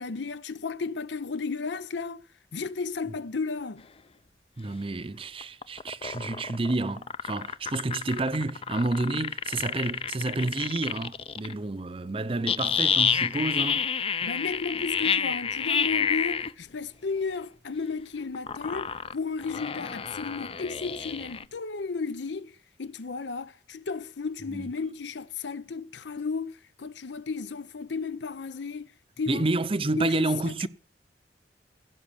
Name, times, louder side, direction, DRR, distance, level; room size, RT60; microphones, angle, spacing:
voice 1, 0.0-2.3 2.5-3.9 14.2-28.9 29.2-29.5 30.0-30.7, left 4 dB, 75° left, 0.6 m, -34 dB
voice 2, 4.6-13.9 24.5-24.7 29.3-30.7, right 2 dB, 30° right, 0.6 m, -29 dB
sound 1, 5.4-11.5 12.5-16.5 18.3-21.4, left 7 dB, 30° left, 0.5 m, -29 dB
16.5 x 5.9 x 7.0 m
head